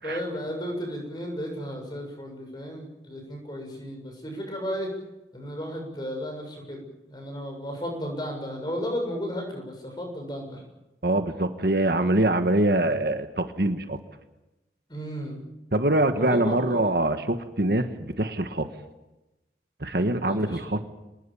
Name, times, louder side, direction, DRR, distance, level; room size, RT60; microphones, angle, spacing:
voice 1, 0.0-4.9 5.3-6.8 7.1-10.6 14.9-15.4 16.2-16.9 20.2-20.6, equal, 25° left, 2 dB, 7.3 m, -34 dB
voice 2, 11.0-14.0 15.7-18.7 19.8-20.8, right 1 dB, 60° right, 7 dB, 1.5 m, -24 dB
26.5 x 20.0 x 7.2 m, 1.0 s
head